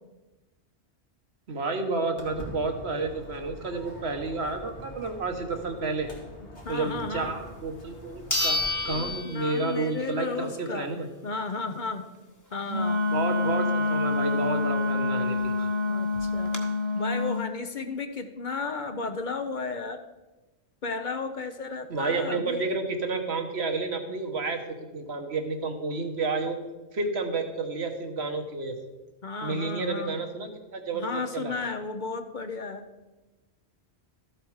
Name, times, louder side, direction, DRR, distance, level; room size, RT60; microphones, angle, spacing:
voice 1, 1.5-6.1 6.7-11.1 13.1-15.7 21.9-24.6 24.9-26.6 26.9-28.8 29.4-31.5, right 3 dB, 70° right, 5 dB, 1.5 m, -30 dB
Walk footsteps, 2.2-9.1, left 1 dB, 85° left, 2.6 m, -43 dB
voice 2, 6.4-7.3 9.2-12.1 12.5-13.0 15.9-16.5 16.9-20.0 20.8-22.6 29.2-30.2 30.9-32.9, left 4 dB, 50° left, 8 dB, 0.8 m, -33 dB
sound 1, 7.5-7.6 8.3-10.1 10.5-10.6 15.2-15.3 15.5-15.6 16.1-16.6, left 2 dB, 15° left, 1.0 m, -30 dB
Wind instrument woodwind instrument, 12.7-17.4, left 2 dB, 45° right, 0.9 m, -27 dB
13.5 x 7.8 x 4.8 m, 1.1 s
omnidirectional pair, 1.1 m